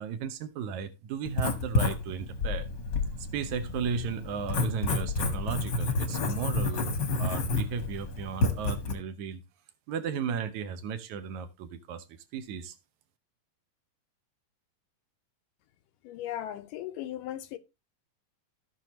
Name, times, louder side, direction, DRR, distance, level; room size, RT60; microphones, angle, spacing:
voice 1, 0.0-2.7 3.2-9.4 9.9-12.1 12.3-12.8, right 7 dB, 70° right, 2.1 m, -35 dB
Writing, 1.3-8.9, left 3 dB, 50° left, 1.4 m, -30 dB
voice 2, 16.0-17.6, left 12 dB, 80° left, 2.3 m, -37 dB
15.5 x 6.2 x 3.0 m
omnidirectional pair, 4.0 m